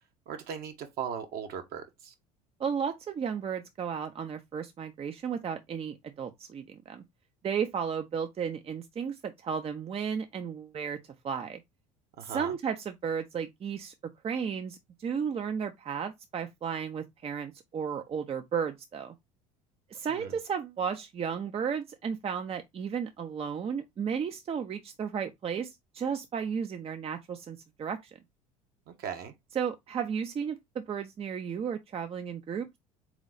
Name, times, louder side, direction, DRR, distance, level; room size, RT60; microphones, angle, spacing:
voice 1, 0.3-2.1 12.2-12.6 20.1-20.3 28.9-29.3, right 7 dB, 55° right, 1.2 m, -38 dB
voice 2, 2.6-7.0 7.4-11.0 11.2-11.6 12.2-13.9 14.2-19.1 19.9-28.1 29.5-32.8, right 7 dB, 30° right, 0.6 m, -34 dB
3.9 x 3.1 x 3.9 m
hypercardioid pair, 70°, 19 cm